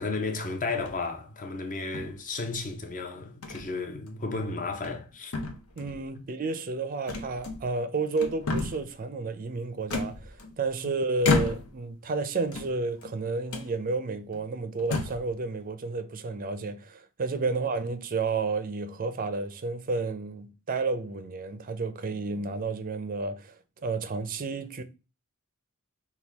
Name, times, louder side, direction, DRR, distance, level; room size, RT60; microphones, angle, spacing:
voice 1, 0.0-5.3, left 3 dB, 35° left, 0.8 m, -33 dB
sound 1, 0.7-1.1 1.9-2.7 3.4-3.7 4.1-4.2 4.7-5.1 5.3-6.0 7.1-7.8 8.1-8.9 9.9-10.7 11.2-11.9 12.4-13.1 13.5-13.7 14.3-14.4 14.8-15.3, left 3 dB, 65° left, 0.8 m, -32 dB
voice 2, 5.8-23.6 23.8-24.8, right 3 dB, 40° right, 0.5 m, -31 dB
5.9 x 2.3 x 3.4 m
head